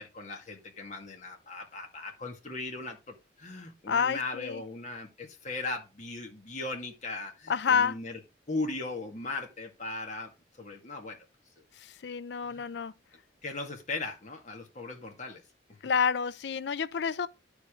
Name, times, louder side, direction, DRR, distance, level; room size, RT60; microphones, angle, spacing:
voice 1, 0.0-8.2 8.5-10.3 10.6-11.2 11.6-11.7 12.4-12.7 13.4-15.4, left 3 dB, 40° left, 2.1 m, -38 dB
voice 2, 3.9-4.6 7.5-8.0 11.8-12.9 15.8-17.3, left 6 dB, 60° left, 0.4 m, -29 dB
11.0 x 5.2 x 3.8 m
head